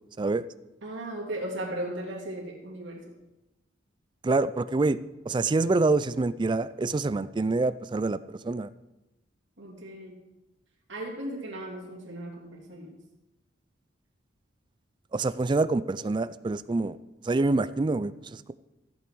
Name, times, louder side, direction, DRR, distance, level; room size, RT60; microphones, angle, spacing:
voice 1, 0.8-3.0 9.6-10.2 10.9-13.0, right 1 dB, 70° right, -2 dB, 2.9 m, -36 dB
voice 2, 4.2-5.0 5.3-8.2 8.4-8.7 15.1-17.0 17.2-18.5, right 3 dB, 25° right, 15 dB, 0.3 m, -26 dB
14.0 x 8.3 x 4.7 m, 0.97 s
head